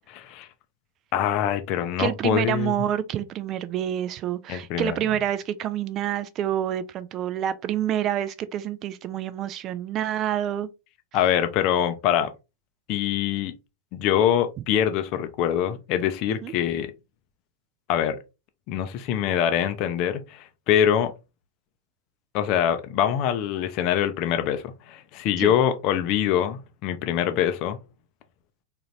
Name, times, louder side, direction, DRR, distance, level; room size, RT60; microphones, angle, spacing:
voice 1, 0.1-0.5 1.1-2.7 4.5-4.9 11.1-12.3 12.9-13.5 13.9-16.9 17.9-18.2 18.7-21.1 22.3-27.8, left 9 dB, 40° left, 0.5 m, -24 dB
voice 2, 2.0-10.7 16.4-16.5 25.4-25.5, right 11 dB, 35° right, 0.4 m, -27 dB
3.8 x 2.5 x 3.0 m
figure-of-eight pair, 90°, 0 cm